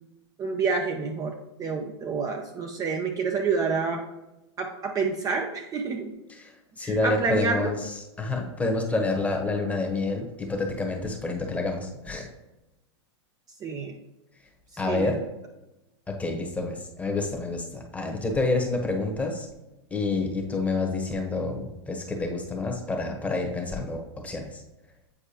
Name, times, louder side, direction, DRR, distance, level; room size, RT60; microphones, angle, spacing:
voice 1, 0.4-4.0 4.6-6.1 6.8-7.7 13.6-13.9 14.9-15.2, right 4 dB, 25° right, 3 dB, 0.5 m, -28 dB
voice 2, 6.3-12.3 14.8-15.2 16.1-19.5 19.9-24.6, left 3 dB, 10° left, 2 dB, 1.0 m, -28 dB
8.4 x 4.3 x 2.9 m, 0.98 s
hypercardioid pair, 125°, 15 cm